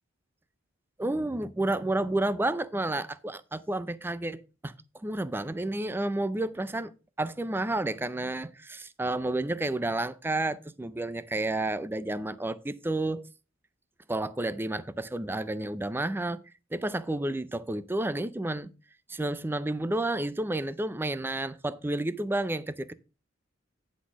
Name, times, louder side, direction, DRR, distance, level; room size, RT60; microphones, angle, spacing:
voice 1, 1.0-4.7 5.0-6.9 7.2-13.2 14.1-16.4 16.7-18.7 19.1-22.9, right 2 dB, 10° right, 0.4 m, -30 dB
10.0 x 4.2 x 6.0 m
head